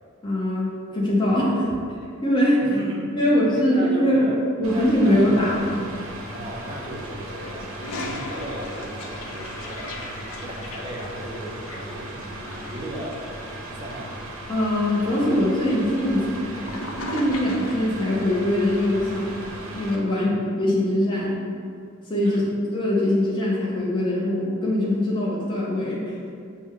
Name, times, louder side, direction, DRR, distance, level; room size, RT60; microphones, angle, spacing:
voice 1, 0.2-1.7 2.2-2.6 3.2-4.3 4.6-5.7 14.5-16.8 17.1-19.3 19.7-20.3 20.6-21.4 22.1-22.4 22.7-26.1, left 1 dB, 20° left, -6 dB, 0.7 m, -22 dB
voice 2, 2.6-4.4 4.7-5.7 6.3-10.0 10.4-13.2 13.7-14.1 20.1-20.4 22.2-22.5, equal, 25° right, -3 dB, 0.6 m, -36 dB
Mechanical fan, 4.6-20.0, right 1 dB, 80° right, 0.6 m, -37 dB
Toilet flush, 7.2-17.9, left 1 dB, 75° left, 0.5 m, -38 dB
6.0 x 2.1 x 3.6 m, 2.3 s
head